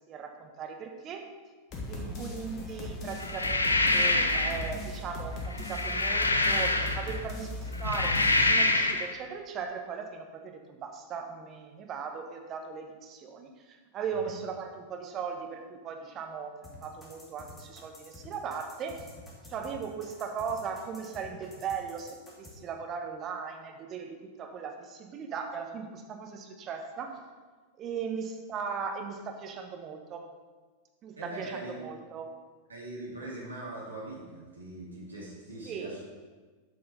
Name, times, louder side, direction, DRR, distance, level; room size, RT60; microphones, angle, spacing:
voice 1, 0.1-1.3 1.9-7.5 7.8-19.1 19.5-27.2 27.8-30.3 31.0-32.3 35.6-35.9, right 6 dB, 30° right, 4 dB, 1.1 m, -38 dB
sound 1, 1.7-8.5, left 1 dB, 35° left, 1.6 m, -38 dB
voice 2, 1.9-2.2 14.1-14.3 31.2-32.1 32.7-36.0, right 2 dB, 80° right, -4 dB, 2.4 m, -42 dB
sound 2, 3.2-4.7 5.5-7.2 7.7-9.1, left 2 dB, 80° left, 0.6 m, -26 dB
sound 3, 16.6-22.5, left 2 dB, 15° left, 2.2 m, -50 dB
7.7 x 5.6 x 5.5 m, 1.4 s
figure-of-eight pair, 90°, 0 cm